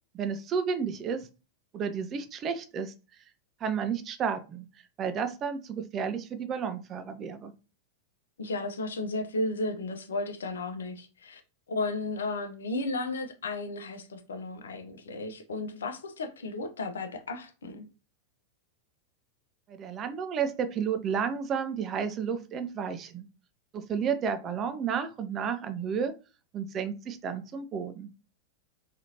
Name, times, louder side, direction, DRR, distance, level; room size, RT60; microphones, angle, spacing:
voice 1, 0.1-1.3 1.7-2.9 3.6-4.7 5.0-7.5 19.7-23.3 23.7-26.1 26.5-28.1, right 6 dB, 30° right, 0.4 m, -32 dB
voice 2, 8.4-11.4 11.7-17.8, left 2 dB, 65° left, 0.5 m, -34 dB
2.8 x 2.4 x 2.8 m
figure-of-eight pair, 90°, 0 cm